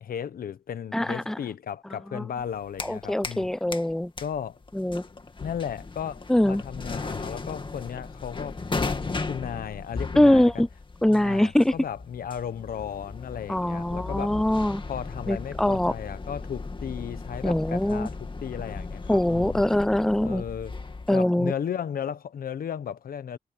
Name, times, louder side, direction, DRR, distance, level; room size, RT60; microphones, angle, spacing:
voice 1, 0.0-3.5 4.2-4.6 5.4-8.6 8.8-10.6 11.1-14.4 14.9-19.6 20.2-20.8 21.1-23.4, left 8 dB, 85° left, 1.1 m, -35 dB
voice 2, 0.9-1.4 2.1-2.2 2.8-4.1 4.7-5.0 6.3-6.6 10.2-10.7 11.0-11.7 13.5-14.8 15.3-15.9 17.4-18.1 19.1-20.4 21.1-21.5, left 1 dB, 5° left, 0.3 m, -23 dB
sound 1, 2.4-3.5 3.7-21.2, left 3 dB, 35° left, 2.2 m, -36 dB
cardioid pair, 90°, 15 cm